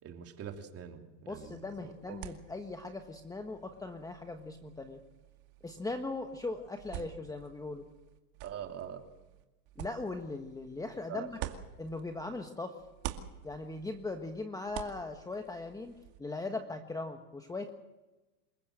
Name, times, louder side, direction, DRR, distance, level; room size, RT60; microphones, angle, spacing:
voice 1, 0.0-1.6 1.8-2.2 6.9-7.1 8.4-9.0 11.1-11.5, right 8 dB, 30° right, 4 dB, 3.1 m, -44 dB
voice 2, 1.3-5.0 5.6-7.9 9.8-11.4 11.8-12.8 13.4-15.9 16.2-17.7, left 3 dB, 5° left, 5 dB, 1.3 m, -39 dB
sound 1, 1.3-12.5 12.8-16.2, right 13 dB, 45° right, 2.3 m, -48 dB
28.0 x 15.0 x 7.8 m, 1.1 s
supercardioid pair, 130°, 48 cm